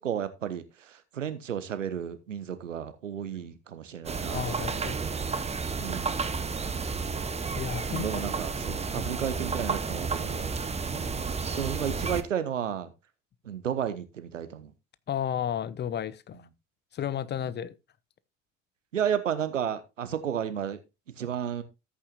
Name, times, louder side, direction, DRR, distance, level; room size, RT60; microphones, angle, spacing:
voice 1, 0.0-5.2 5.8-6.2 7.9-10.6 10.9-12.9 13.4-14.7 17.3-17.5 18.9-20.8 21.1-21.6, right 8 dB, 80° right, 1.0 m, -33 dB
sound 1, 4.1-12.2, right 4 dB, 15° right, 1.0 m, -31 dB
voice 2, 4.3-5.0 5.3-5.4 7.5-8.2 15.1-16.4 16.9-17.7, left 9 dB, 30° left, 0.8 m, -33 dB
14.0 x 8.4 x 2.4 m
figure-of-eight pair, 55°, 37 cm